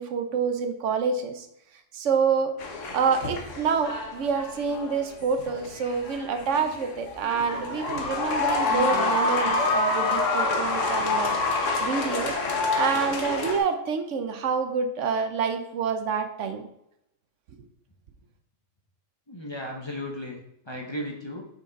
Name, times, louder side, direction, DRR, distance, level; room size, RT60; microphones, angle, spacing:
voice 1, 0.0-1.5 1.9-2.5 2.9-12.3 12.8-16.7 17.6-17.7, right 5 dB, 75° right, 7 dB, 1.0 m, -27 dB
sound 1, 2.6-13.6, left 3 dB, 75° left, 1.3 m, -27 dB
voice 2, 19.3-21.4, left 1 dB, 25° left, -1 dB, 0.8 m, -35 dB
5.8 x 4.5 x 3.9 m, 0.79 s
omnidirectional pair, 1.3 m